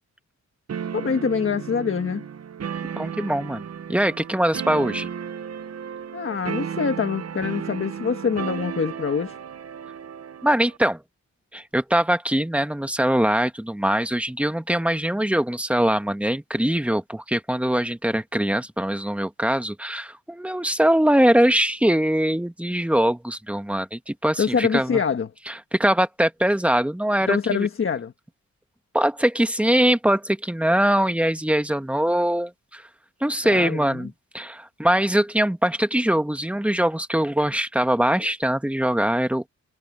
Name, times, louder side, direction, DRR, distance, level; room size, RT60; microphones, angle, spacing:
sound 1, 0.7-10.8, right 8 dB, 55° right, 0.9 m, -34 dB
voice 1, 0.9-2.2 6.1-9.4 24.4-25.3 27.3-28.1 33.4-34.1, left 6 dB, 45° left, 1.4 m, -25 dB
voice 2, 2.9-5.1 10.4-11.0 11.5-25.0 25.5-27.7 28.9-32.8 33.2-39.4, right 1 dB, 5° right, 1.3 m, -22 dB
wide cardioid pair, 150°, 30 cm